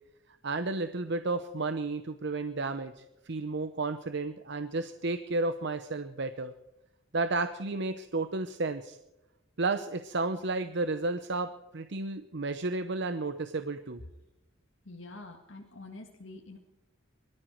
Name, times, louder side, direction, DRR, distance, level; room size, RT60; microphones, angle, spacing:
voice 1, 0.4-6.5 7.1-9.0 9.6-14.0, right 3 dB, 60° right, 9 dB, 0.8 m, -32 dB
voice 2, 14.8-16.6, left 2 dB, 80° left, 1 dB, 1.8 m, -46 dB
23.0 x 13.5 x 4.6 m, 1.0 s
head